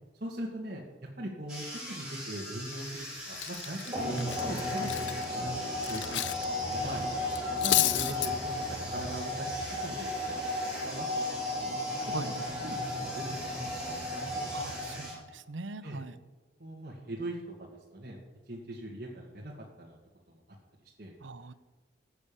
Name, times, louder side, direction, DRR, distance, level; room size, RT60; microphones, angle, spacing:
voice 1, 0.2-0.8 1.2-5.1 5.4-10.4 10.8-11.3 11.6-11.7 12.1-12.3 12.6-14.5 15.8-16.0 16.6-18.2 18.5-19.5 19.8-20.0 20.3-20.4 21.0-21.1, right 1 dB, 50° right, -4 dB, 2.0 m, -41 dB
sound 1, 1.5-15.1, equal, 5° right, 5.5 m, -43 dB
Cutlery silverware, 2.7-3.0 3.3-6.4 6.7-6.9 7.3-8.3, left 15 dB, 75° left, 0.5 m, -31 dB
sound 2, 3.9-15.3, left 1 dB, 25° right, 3.4 m, -34 dB
voice 2, 14.5-16.1 21.2-21.5, right 3 dB, 85° right, 15 dB, 0.7 m, -41 dB
15.5 x 8.2 x 7.0 m, 1.3 s
head